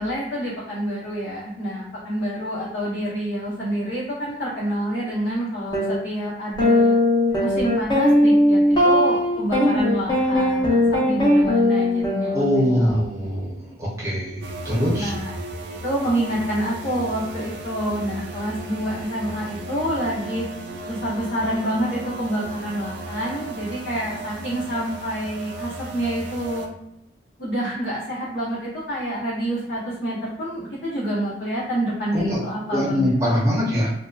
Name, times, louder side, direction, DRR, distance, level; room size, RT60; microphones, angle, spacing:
voice 1, 0.0-7.0 7.4-13.0 14.9-15.3 15.8-20.4 20.9-26.7 27.4-33.4, equal, 65° left, -10 dB, 0.9 m, -27 dB
sound 1, 5.7-5.9 6.6-12.9, left 1 dB, 25° left, 0.6 m, -19 dB
voice 2, 12.3-15.1 32.1-32.4 32.7-33.9, equal, 15° right, -5 dB, 0.7 m, -22 dB
sound 2, 14.4-26.7, right 2 dB, 70° right, 0.4 m, -36 dB
2.6 x 2.1 x 2.3 m, 0.86 s
head